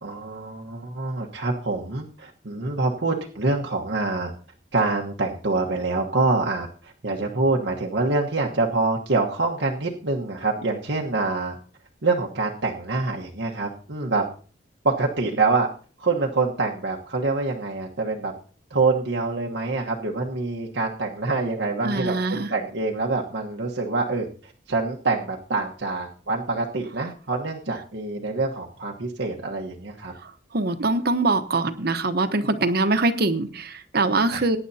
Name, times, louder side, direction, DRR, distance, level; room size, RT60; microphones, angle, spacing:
voice 1, 0.0-4.3 4.7-11.5 12.0-14.2 14.8-15.7 16.0-18.3 18.7-30.1 34.3-34.4, right 3 dB, 90° right, -1 dB, 1.3 m, -25 dB
voice 2, 21.8-22.5 30.2-34.6, right 2 dB, 60° right, 10 dB, 1.1 m, -23 dB
22.0 x 10.0 x 2.8 m, 0.41 s
head